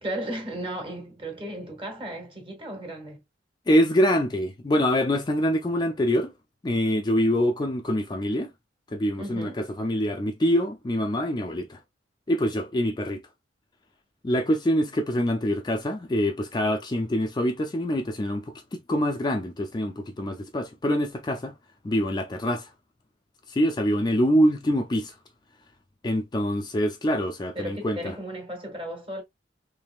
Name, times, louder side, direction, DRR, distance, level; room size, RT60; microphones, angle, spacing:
voice 1, 0.0-3.2 9.2-9.6 27.5-29.2, right 1 dB, 30° right, 1.6 m, -35 dB
voice 2, 3.7-6.3 6.6-8.5 8.9-11.8 12.3-13.2 14.2-21.5 21.8-22.7 23.5-25.2 26.0-28.1, equal, 25° left, 0.4 m, -25 dB
3.5 x 3.3 x 2.3 m
head